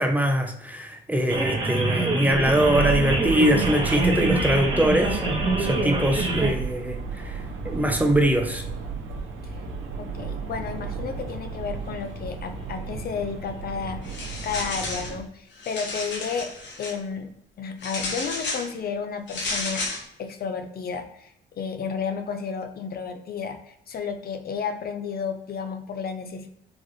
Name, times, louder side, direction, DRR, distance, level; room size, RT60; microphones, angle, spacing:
voice 1, 0.0-5.2 5.6-7.4 7.6-8.6, equal, 10° right, 3 dB, 0.5 m, -23 dB
sound 1, 1.3-6.5, right 2 dB, 25° right, 0.9 m, -26 dB
sound 2, 2.3-15.2, right 5 dB, 75° right, 0.8 m, -33 dB
voice 2, 10.0-14.0 14.4-16.5 16.8-17.3 17.6-19.8 20.2-26.5, left 6 dB, 50° left, 7 dB, 0.5 m, -32 dB
sound 3, 14.0-15.1 15.5-16.9 17.8-18.7 19.3-20.0, left 3 dB, 70° left, 1.1 m, -32 dB
3.9 x 2.4 x 3.1 m, 0.78 s
cardioid pair, 90°, 20 cm